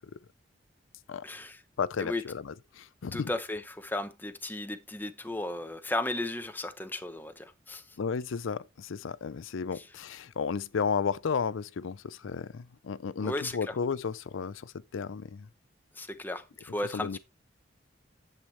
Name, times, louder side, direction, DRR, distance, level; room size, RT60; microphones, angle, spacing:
voice 1, 1.2-1.6 2.0-2.3 3.1-8.0 9.7-9.9 13.2-13.8 15.9-17.2, left 1 dB, 10° left, 0.7 m, -35 dB
voice 2, 1.8-3.3 8.0-15.5 16.9-17.2, left 5 dB, 85° left, 0.5 m, -33 dB
10.5 x 8.1 x 3.2 m
head